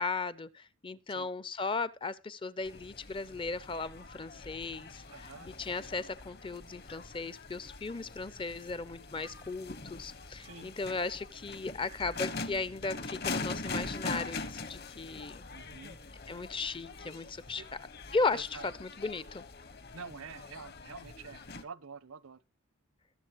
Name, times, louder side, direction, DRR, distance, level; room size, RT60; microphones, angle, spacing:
voice 1, 0.0-15.4 16.3-17.6 18.1-19.4, left 3 dB, 25° left, 0.6 m, -36 dB
sound 1, 2.6-21.6, left 3 dB, 45° left, 1.3 m, -43 dB
voice 2, 5.1-5.5 10.4-10.7 15.5-16.0 17.6-17.7 18.3-18.7 19.9-22.4, right 5 dB, 80° right, 0.9 m, -47 dB
21.5 x 7.3 x 3.0 m
head